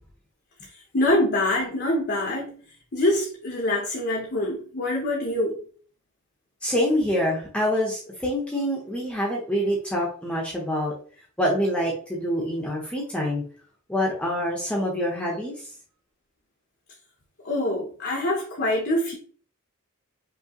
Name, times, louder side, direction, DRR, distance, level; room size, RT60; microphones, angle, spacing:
voice 1, 0.9-2.5 2.9-5.6 17.4-19.2, left 1 dB, 50° left, -1 dB, 1.0 m, -24 dB
voice 2, 6.6-10.9 11.4-13.4 13.9-15.5, equal, 5° left, -3 dB, 1.0 m, -26 dB
5.5 x 3.0 x 3.0 m, 0.43 s
head